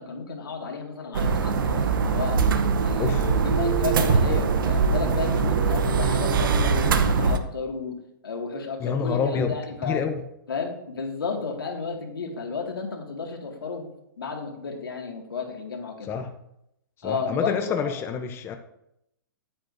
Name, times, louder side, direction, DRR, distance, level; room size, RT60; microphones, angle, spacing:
voice 1, 0.0-2.4 2.8-7.9 8.2-10.0 10.5-13.9 14.2-16.1 17.0-17.9, left 4 dB, 85° left, 1 dB, 2.0 m, -32 dB
sound 1, 1.1-7.4, right 5 dB, 70° right, 0.8 m, -22 dB
voice 2, 3.0-3.3 8.8-9.5 9.8-10.2 16.0-16.3 17.0-18.6, left 6 dB, 20° left, 6 dB, 0.7 m, -27 dB
9.0 x 8.9 x 2.6 m, 0.80 s
hypercardioid pair, 130°, 12 cm